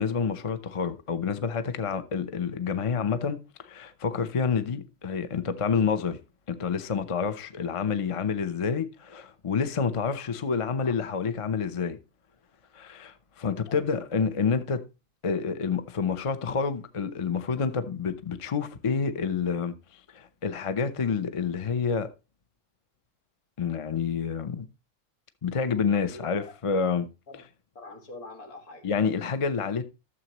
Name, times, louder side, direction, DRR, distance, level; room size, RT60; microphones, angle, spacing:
voice 1, 0.0-6.2 6.5-12.0 12.7-14.8 15.2-19.7 20.1-22.1 23.6-24.7 25.4-27.1 28.8-29.8, left 6 dB, 35° left, 0.5 m, -28 dB
voice 2, 25.9-26.6 27.3-27.4 27.8-28.9, left 2 dB, 80° left, 2.3 m, -44 dB
12.5 x 7.5 x 3.0 m
omnidirectional pair, 1.6 m